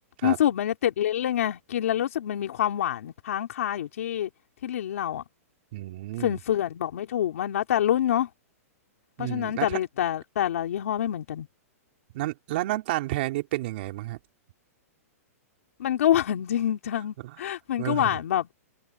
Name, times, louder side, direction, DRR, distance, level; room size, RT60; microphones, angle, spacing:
voice 1, 0.2-4.3 4.6-5.2 6.2-8.3 9.2-11.5 15.8-18.5, left 11 dB, 65° left, 3.0 m, -26 dB
voice 2, 5.7-6.4 9.2-9.8 12.1-14.2 17.2-17.4 17.8-18.2, right 17 dB, 40° right, 3.7 m, -31 dB
hypercardioid pair, 165°, 8 cm